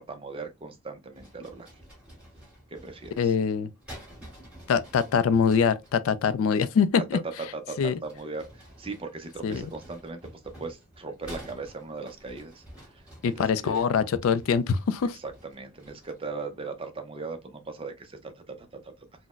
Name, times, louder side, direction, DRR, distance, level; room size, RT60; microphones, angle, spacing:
voice 1, 0.0-1.7 2.7-3.3 6.9-7.0 7.4-13.8 15.1-18.9, right 3 dB, 25° right, 0.5 m, -39 dB
sound 1, 1.1-6.0 7.7-16.3, equal, 5° right, 1.6 m, -49 dB
voice 2, 3.2-3.7 4.7-7.2 7.8-7.9 9.4-9.7 13.2-15.2, left 6 dB, 65° left, 0.3 m, -24 dB
3.9 x 2.0 x 2.3 m
head